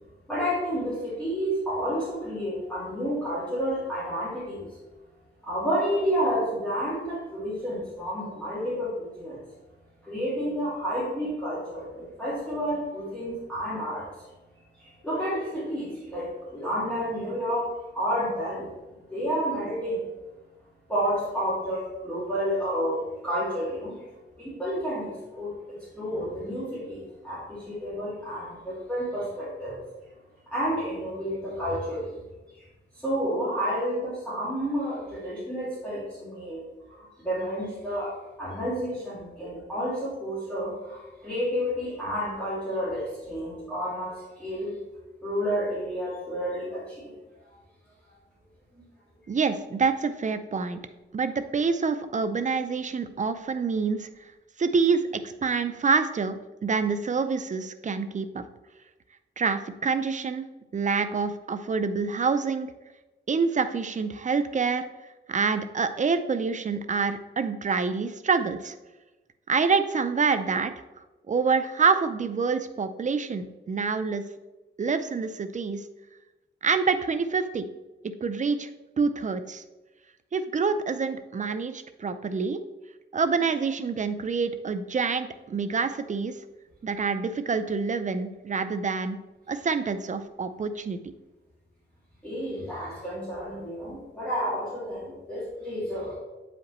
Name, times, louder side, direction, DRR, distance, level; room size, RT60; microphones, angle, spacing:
voice 1, 0.3-4.7 5.4-9.4 10.0-14.1 14.8-17.7 17.9-18.8 19.1-20.1 20.9-24.0 24.4-29.8 30.5-32.1 32.5-32.7 32.9-36.6 36.9-44.8 45.2-47.1 47.5-47.6 92.2-96.1, equal, 5° left, -10 dB, 2.3 m, -30 dB
voice 2, 49.3-50.8 51.1-54.1 54.6-58.4 59.4-60.5 60.7-62.7 63.3-64.8 65.3-68.7 69.5-70.7 71.3-74.2 74.8-75.8 76.6-77.7 78.2-78.7 79.0-79.6 80.3-82.6 83.1-86.4 86.8-89.2 89.5-91.0, right 5 dB, 40° right, 10 dB, 0.4 m, -26 dB
8.3 x 5.0 x 3.0 m, 1.1 s
wide cardioid pair, 120°, 20 cm